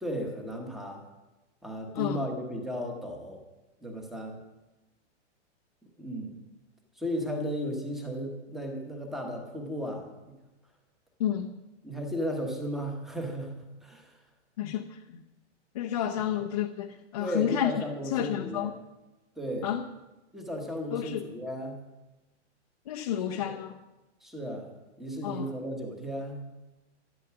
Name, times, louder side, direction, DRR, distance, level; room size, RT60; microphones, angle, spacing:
voice 1, 0.0-1.0 1.6-3.4 3.8-4.4 6.0-6.3 6.9-10.3 11.8-13.5 13.8-14.2 16.1-16.3 17.2-18.7 19.4-19.7 20.3-21.8 23.3-23.4 24.2-24.7 25.0-26.4, equal, ahead, 2 dB, 1.1 m, -35 dB
voice 2, 11.2-11.5 14.6-15.2 15.7-17.7 18.1-18.7 19.6-19.8 20.9-21.2 22.9-23.8 25.2-25.5, left 11 dB, 30° left, 2 dB, 0.7 m, -30 dB
13.0 x 12.0 x 5.9 m, 1.1 s
hypercardioid pair, 175°, 35 cm